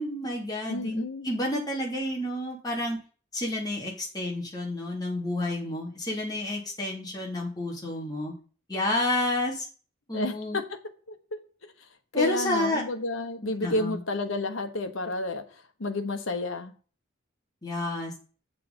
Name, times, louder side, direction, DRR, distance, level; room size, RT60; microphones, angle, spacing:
voice 1, 0.0-3.0 3.3-8.3 8.7-9.7 10.1-10.6 12.1-12.8 13.6-14.0 17.6-18.1, left 1 dB, 20° left, -3 dB, 2.6 m, -30 dB
voice 2, 0.7-1.3 10.1-10.6 11.1-11.2 11.8-11.9 12.1-16.7, left 2 dB, 75° left, 6 dB, 1.2 m, -30 dB
7.9 x 6.8 x 5.3 m, 0.39 s
head